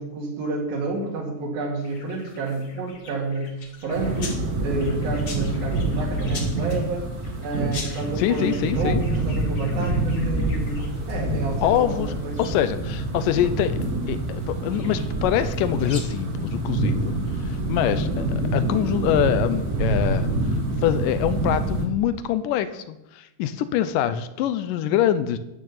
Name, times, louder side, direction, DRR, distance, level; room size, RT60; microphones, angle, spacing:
voice 1, 0.0-3.5 3.8-4.4 4.6-7.1 7.4-12.6, right 3 dB, 75° right, -1 dB, 4.0 m, -30 dB
sound 1, 1.8-16.0, left 4 dB, 55° left, 1.1 m, -43 dB
sound 2, 3.9-21.9, right 2 dB, 40° right, 1.3 m, -26 dB
voice 2, 8.2-9.0 11.6-12.1 12.4-13.8 14.1-17.2 17.4-20.3 20.8-25.4, left 11 dB, 75° left, 13 dB, 2.1 m, -24 dB
12.5 x 6.4 x 8.5 m, 0.92 s
omnidirectional pair, 4.3 m